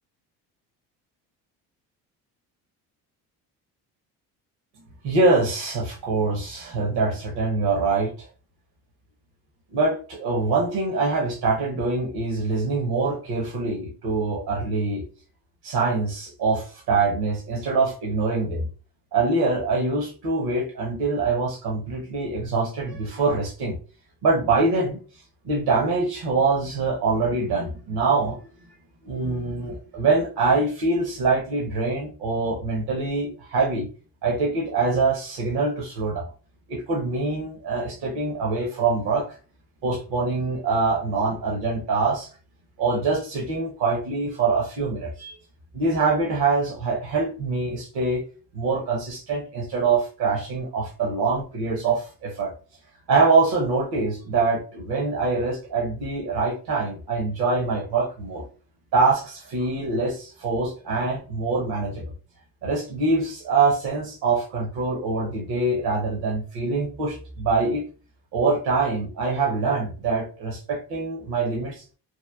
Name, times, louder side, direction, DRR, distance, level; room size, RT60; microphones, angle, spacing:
voice 1, 5.0-8.3 9.7-15.1 15.6-18.7 19.1-23.8 24.2-25.0 25.4-28.4 29.0-33.9 34.2-36.3 36.7-39.4 39.8-42.3 42.8-45.4 45.7-48.2 48.5-52.5 53.1-58.4 58.9-62.1 62.6-67.9 68.3-71.8, right 3 dB, 60° right, -1 dB, 0.8 m, -24 dB
3.0 x 2.1 x 2.3 m, 0.37 s
hypercardioid pair, 65°, 44 cm